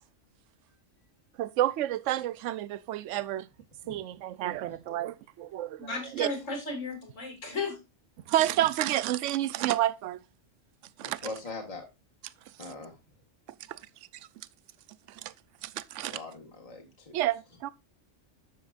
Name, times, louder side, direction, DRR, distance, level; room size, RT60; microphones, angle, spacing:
voice 1, 1.4-3.5 3.9-6.3 8.3-10.2 11.0-11.2 13.7-13.8 15.1-15.3 15.6-16.2 17.1-17.7, right 13 dB, 75° right, 0.9 m, -30 dB
voice 2, 5.8-7.8, left 2 dB, 75° left, 3.0 m, -34 dB
voice 3, 11.0-11.8 12.6-13.0 16.1-17.2, left 3 dB, 30° left, 1.6 m, -41 dB
9.8 x 7.2 x 2.5 m
omnidirectional pair, 1.3 m